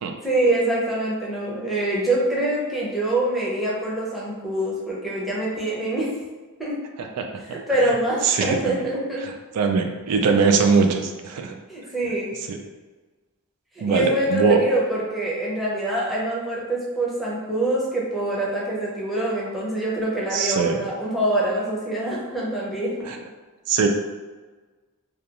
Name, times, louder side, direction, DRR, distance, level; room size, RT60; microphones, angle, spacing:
voice 1, 0.2-6.1 6.6-6.8 7.4-9.3 11.7-12.3 13.7-23.1, right 1 dB, ahead, -6 dB, 0.6 m, -25 dB
voice 2, 7.2-7.6 8.2-8.8 9.6-11.5 12.5-12.6 13.8-14.6 20.3-20.8 23.1-23.2 23.7-23.9, right 5 dB, 85° right, 4 dB, 0.3 m, -21 dB
2.3 x 2.3 x 2.8 m, 1.3 s
head